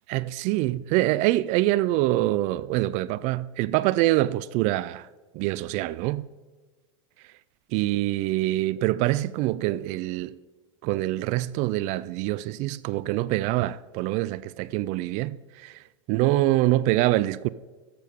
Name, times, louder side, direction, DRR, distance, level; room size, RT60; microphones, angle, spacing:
voice 1, 0.1-5.1 5.3-6.3 7.7-10.3 10.8-17.5, right 16 dB, 50° right, 0.4 m, -25 dB
12.5 x 8.4 x 5.2 m
hypercardioid pair, 105°, 16 cm